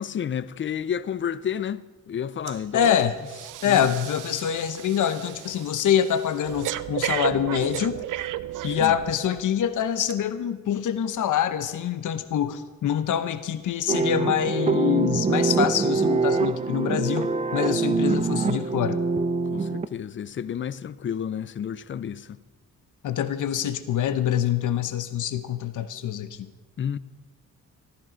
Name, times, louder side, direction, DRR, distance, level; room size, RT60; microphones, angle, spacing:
voice 1, 0.0-1.8 2.1-3.0 3.6-3.9 8.8-9.0 19.5-22.4 26.8-27.0, left 8 dB, 40° left, 0.5 m, -30 dB
Breathing, 2.5-2.7 3.0-9.4 10.0-10.1, right 13 dB, 80° right, 0.5 m, -34 dB
voice 2, 2.7-3.2 3.6-8.0 8.6-19.0 23.0-26.5, left 9 dB, 75° left, 0.9 m, -25 dB
sound 1, 13.9-19.9, right 4 dB, 25° right, 0.4 m, -24 dB
14.5 x 13.5 x 5.1 m
wide cardioid pair, 150°, 31 cm